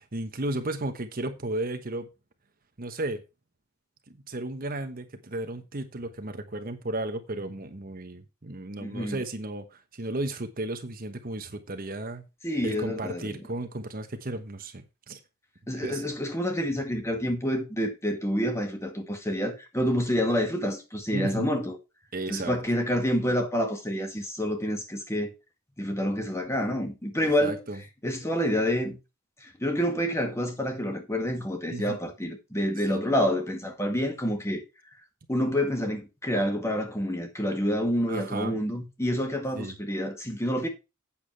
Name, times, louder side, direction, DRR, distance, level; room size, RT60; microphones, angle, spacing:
voice 1, 0.0-2.1 2.8-3.2 4.1-12.2 12.6-15.2 15.8-16.0 21.1-21.6 22.1-22.6 27.2-27.8 31.7-32.0 32.9-33.0 38.1-38.5 39.6-39.8, right 2 dB, 40° right, 1.1 m, -34 dB
voice 2, 8.8-9.2 12.4-13.4 15.7-21.8 22.3-25.3 25.8-27.6 28.0-29.0 29.4-34.6 35.3-40.7, equal, 15° left, 2.0 m, -28 dB
8.6 x 7.2 x 4.6 m
head